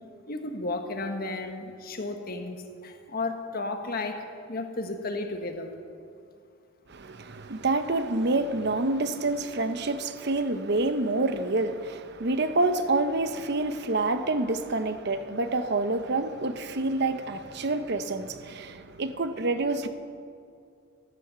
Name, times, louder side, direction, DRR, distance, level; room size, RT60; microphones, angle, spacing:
voice 1, 0.3-5.7, left 2 dB, 45° left, 6 dB, 1.4 m, -33 dB
voice 2, 6.9-19.9, right 2 dB, 50° right, 10 dB, 0.9 m, -27 dB
14.5 x 12.5 x 6.8 m, 2.4 s
head